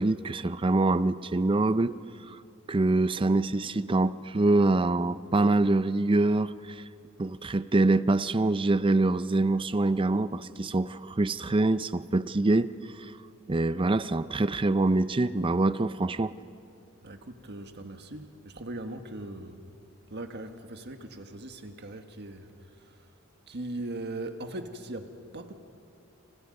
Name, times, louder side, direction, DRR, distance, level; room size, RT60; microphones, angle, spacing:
voice 1, 0.0-1.9 2.3-2.4 2.7-6.5 7.2-12.7 13.0-13.1 13.5-16.3, right 2 dB, 25° right, 15 dB, 0.5 m, -25 dB
voice 2, 17.0-19.6 20.1-23.1 23.5-25.5, right 2 dB, 50° right, 6 dB, 1.6 m, -40 dB
29.0 x 28.0 x 5.4 m, 2.6 s
head